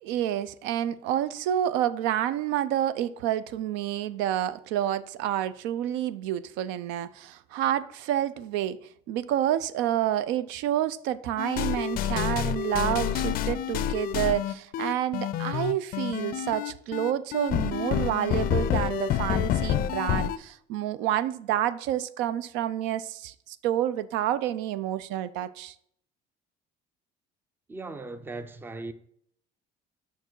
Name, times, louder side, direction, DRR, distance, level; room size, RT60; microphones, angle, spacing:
voice 1, 0.0-8.8 9.1-25.7, right 11 dB, 85° right, 0.4 m, -29 dB
sound 1, 11.4-20.4, left 10 dB, 55° left, 0.4 m, -28 dB
voice 2, 27.7-28.9, right 3 dB, 10° right, 0.4 m, -38 dB
5.6 x 4.5 x 4.5 m
cardioid pair, 125°, 18 cm